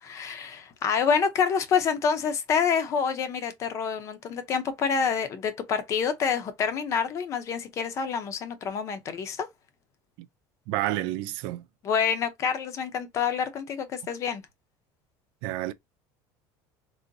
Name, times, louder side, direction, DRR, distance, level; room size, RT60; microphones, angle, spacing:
voice 1, 0.0-9.5 11.8-14.4, left 6 dB, 30° left, 0.6 m, -27 dB
voice 2, 10.7-11.6 15.4-15.7, right 15 dB, 60° right, 0.4 m, -30 dB
3.8 x 2.0 x 2.6 m
cardioid pair, 175°, 9 cm